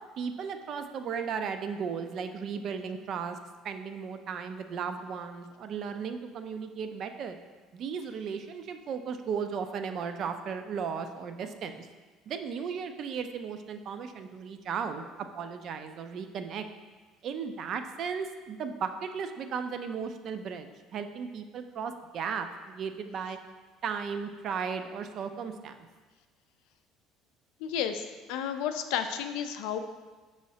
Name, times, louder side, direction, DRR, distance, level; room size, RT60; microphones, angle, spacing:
voice 1, 0.2-3.4 3.6-7.4 7.7-11.9 12.3-16.7 17.2-23.4 23.8-25.8, right 6 dB, 50° right, 8 dB, 0.3 m, -35 dB
voice 2, 27.6-28.0 28.3-29.8, left 9 dB, 80° left, 8 dB, 0.3 m, -31 dB
5.4 x 3.1 x 2.7 m, 1.3 s
cardioid pair, 120°, 0 cm